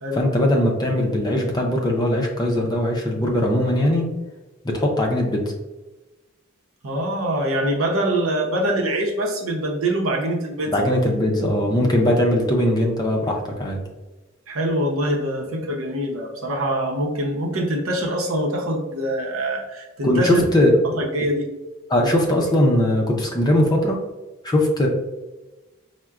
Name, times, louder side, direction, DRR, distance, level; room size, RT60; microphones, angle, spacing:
voice 1, 0.1-4.1 4.6-5.5 10.7-13.8 20.0-20.8 21.9-24.0 24.4-24.9, left 1 dB, 20° left, 0 dB, 0.5 m, -20 dB
voice 2, 6.8-11.0 14.5-20.4 20.8-21.4, right 1 dB, 75° right, -1 dB, 0.8 m, -24 dB
5.6 x 2.1 x 2.4 m, 1.1 s
head